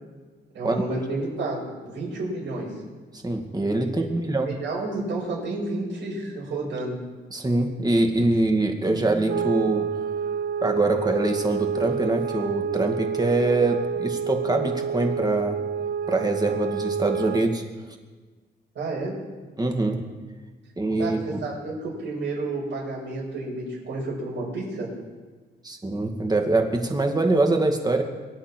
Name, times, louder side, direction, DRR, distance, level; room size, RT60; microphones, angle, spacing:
voice 1, 0.5-2.7 3.8-3.9 4.4-6.9 18.7-19.1 21.0-24.9, right 2 dB, 85° right, -10 dB, 6.0 m, -30 dB
voice 2, 3.2-4.5 7.3-9.9 10.6-15.6 16.1-17.6 19.6-20.0 20.8-21.4 25.6-28.0, right 2 dB, 20° right, 3 dB, 2.3 m, -24 dB
sound 1, 9.3-17.6, right 7 dB, 65° right, 0.7 m, -29 dB
23.0 x 10.5 x 4.6 m, 1.4 s
cardioid pair, 95°, 19 cm